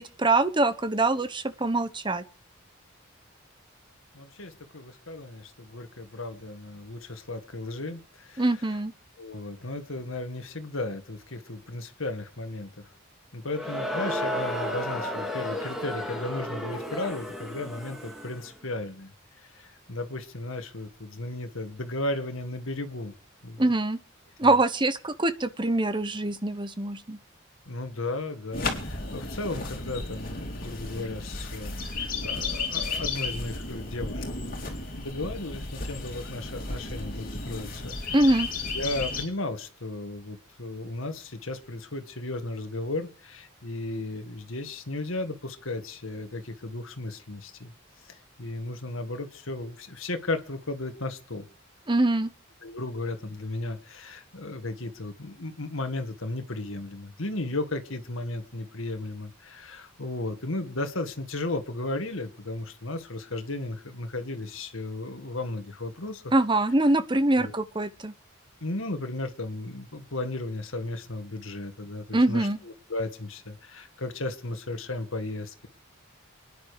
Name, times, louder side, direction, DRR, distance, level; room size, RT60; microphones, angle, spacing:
voice 1, 0.0-2.2 8.4-8.9 23.6-24.0 24.4-27.2 38.1-38.5 51.9-52.3 66.3-68.1 72.1-72.6, right 2 dB, 20° right, 0.9 m, -24 dB
voice 2, 4.1-8.6 9.2-12.9 13.3-23.1 23.4-23.7 24.4-24.6 27.7-38.4 38.7-47.7 48.1-51.5 52.6-66.3 67.3-67.6 68.6-75.7, left 2 dB, 75° left, 1.9 m, -35 dB
Crowd, 13.5-18.5, left 1 dB, ahead, 2.5 m, -33 dB
sound 1, 28.5-39.2, left 3 dB, 45° left, 4.1 m, -34 dB
27.5 x 10.5 x 5.1 m
head